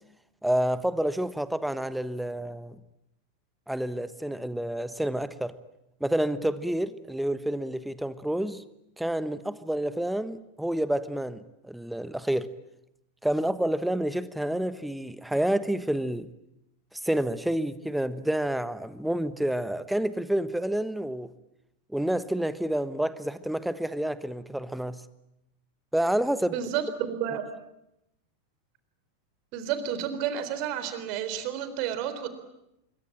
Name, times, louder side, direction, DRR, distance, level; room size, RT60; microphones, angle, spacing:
voice 1, 0.4-2.7 3.7-5.5 6.0-8.6 9.0-12.5 13.2-16.3 16.9-21.3 21.9-25.0 25.9-26.6, right 1 dB, ahead, 1.2 m, -29 dB
voice 2, 26.5-27.4 29.5-32.3, right 9 dB, 45° right, 3.9 m, -31 dB
26.0 x 23.5 x 8.8 m
figure-of-eight pair, 90°, 0 cm